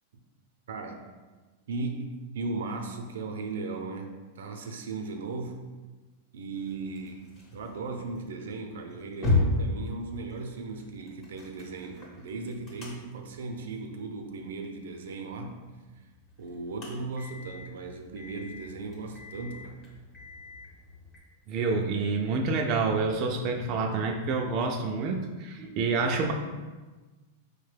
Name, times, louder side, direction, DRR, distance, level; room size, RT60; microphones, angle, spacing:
voice 1, 1.7-5.6 6.3-7.3 7.5-15.6 16.4-19.8, right 3 dB, 90° right, 4 dB, 0.5 m, -37 dB
sound 1, 6.5-21.2, left 2 dB, 25° left, 0.9 m, -36 dB
voice 2, 21.5-26.3, right 4 dB, 35° right, 2 dB, 0.3 m, -28 dB
4.5 x 2.2 x 3.2 m, 1.3 s
supercardioid pair, 160°, 0 cm